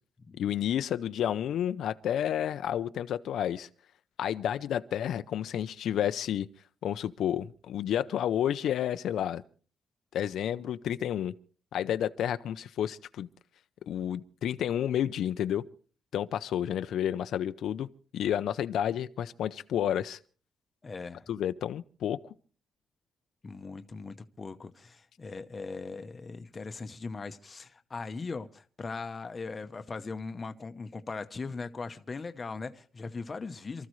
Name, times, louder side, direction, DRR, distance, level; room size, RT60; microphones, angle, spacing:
voice 1, 0.4-3.7 4.2-6.5 6.8-9.4 10.1-11.3 11.7-13.3 13.9-15.6 16.1-17.9 18.1-20.2 21.3-22.3, left 10 dB, 75° left, 0.6 m, -30 dB
voice 2, 20.8-21.3 23.4-33.9, left 4 dB, 25° left, 0.8 m, -39 dB
28.0 x 14.0 x 3.2 m
wide cardioid pair, 175°, 0 cm